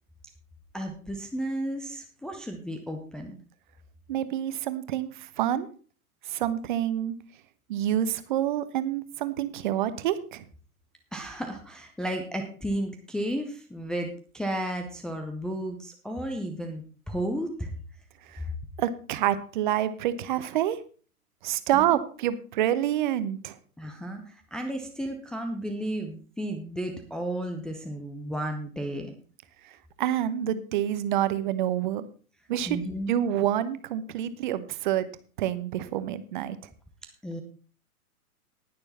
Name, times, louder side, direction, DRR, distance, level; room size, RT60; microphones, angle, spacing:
voice 1, 0.7-3.4 11.1-17.7 21.7-22.0 23.8-29.2 32.7-33.2 37.2-37.4, right 1 dB, ahead, 2 dB, 0.7 m, -33 dB
voice 2, 4.1-5.7 6.3-7.1 7.7-10.4 18.3-18.4 18.8-20.8 21.4-23.6 30.0-32.1 32.5-32.8 33.1-35.1 35.4-36.6, right 11 dB, 35° right, 13 dB, 1.0 m, -27 dB
19.0 x 6.8 x 4.2 m, 0.39 s
figure-of-eight pair, 115°, 45 cm